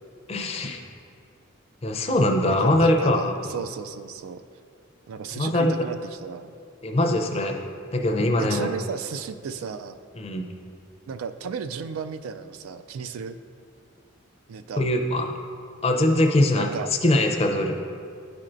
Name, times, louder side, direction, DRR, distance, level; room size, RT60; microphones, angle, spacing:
voice 1, 0.3-0.8 1.8-3.4 5.3-5.7 6.8-7.6 7.9-8.7 10.2-10.5 14.8-15.3 15.8-16.7 17.0-17.8, left 1 dB, 30° left, 3 dB, 0.4 m, -22 dB
voice 2, 2.6-4.4 5.1-6.5 8.4-10.0 11.1-13.4 14.5-14.9 16.5-16.9, right 6 dB, 85° right, 10 dB, 0.3 m, -34 dB
10.5 x 4.3 x 2.5 m, 2.3 s
head